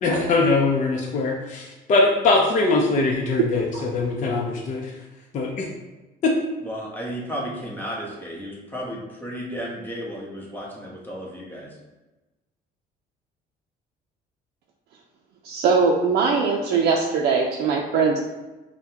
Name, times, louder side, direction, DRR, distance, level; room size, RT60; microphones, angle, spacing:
voice 1, 0.0-4.9 5.3-5.7 6.2-6.3, left 3 dB, 45° left, -1 dB, 0.6 m, -22 dB
voice 2, 6.6-11.7, equal, 10° left, -3 dB, 1.0 m, -33 dB
voice 3, 15.4-18.2, right 5 dB, 70° right, 0 dB, 0.5 m, -21 dB
5.6 x 2.2 x 2.8 m, 1.1 s
cardioid pair, 110°, 17 cm